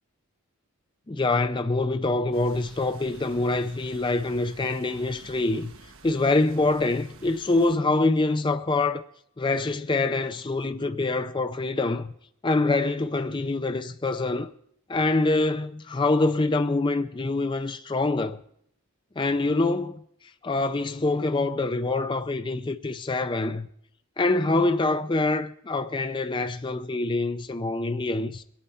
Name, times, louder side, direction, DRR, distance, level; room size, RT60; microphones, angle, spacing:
voice 1, 1.1-5.7 6.0-9.0 9.4-12.1 12.4-14.5 14.9-18.4 19.2-20.0 20.4-23.7 24.2-28.4, left 2 dB, 20° left, 0.5 m, -25 dB
sound 1, 2.3-7.8, right 3 dB, 70° right, 1.1 m, -51 dB
22.5 x 8.8 x 4.3 m
head